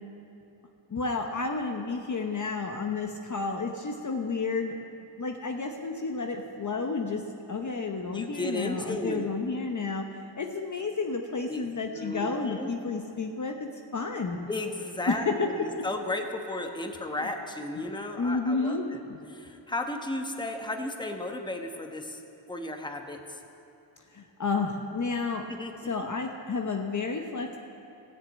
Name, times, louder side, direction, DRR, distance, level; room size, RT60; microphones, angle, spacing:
voice 1, 0.9-4.7 5.2-7.2 7.5-14.4 15.1-15.5 18.2-19.0 24.1-25.4 25.8-27.6, left 4 dB, 40° left, 3 dB, 0.8 m, -31 dB
voice 2, 8.1-9.3 11.5-11.7 11.9-12.7 14.5-15.2 15.5-19.0 19.3-22.2 22.5-23.4 25.5-25.7, left 2 dB, 10° left, 4 dB, 1.1 m, -34 dB
15.0 x 6.9 x 8.4 m, 2.8 s
cardioid pair, 95°, 48 cm